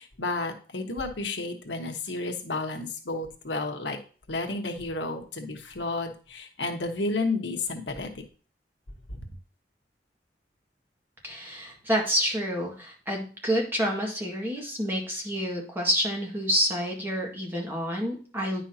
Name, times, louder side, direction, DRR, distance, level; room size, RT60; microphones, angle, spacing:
voice 1, 0.0-4.0 4.3-8.1 9.1-9.3, left 3 dB, 85° left, 4 dB, 1.1 m, -31 dB
voice 2, 11.2-18.6, equal, 10° right, -1 dB, 1.7 m, -28 dB
9.7 x 5.4 x 2.8 m, 0.38 s
head